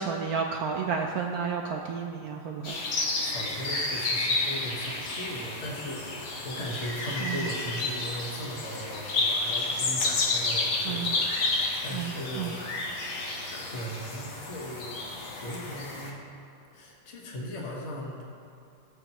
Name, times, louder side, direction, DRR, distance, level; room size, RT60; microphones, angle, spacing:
voice 1, 0.0-2.8 7.2-7.6 10.8-11.2 11.9-12.6, right 6 dB, 75° right, 2 dB, 0.8 m, -32 dB
sound 1, 2.6-16.1, left 3 dB, 85° left, 2.0 m, -31 dB
voice 2, 3.2-11.3 11.8-13.2 13.5-14.9 15.4-16.2 16.7-18.2, equal, 40° left, -2 dB, 1.4 m, -38 dB
15.5 x 7.5 x 3.0 m, 2.5 s
omnidirectional pair, 2.1 m